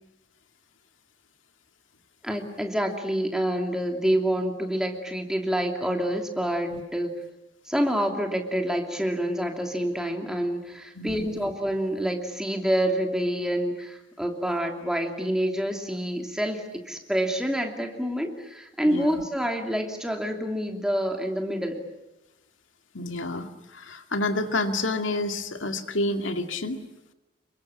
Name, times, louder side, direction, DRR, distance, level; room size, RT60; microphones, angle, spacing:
voice 1, 2.2-7.1 7.7-21.8, equal, 5° right, 2 dB, 2.9 m, -27 dB
voice 2, 11.0-11.5 18.8-19.2 22.9-26.8, left 2 dB, 85° left, 6 dB, 2.3 m, -29 dB
28.5 x 23.5 x 8.7 m, 0.95 s
head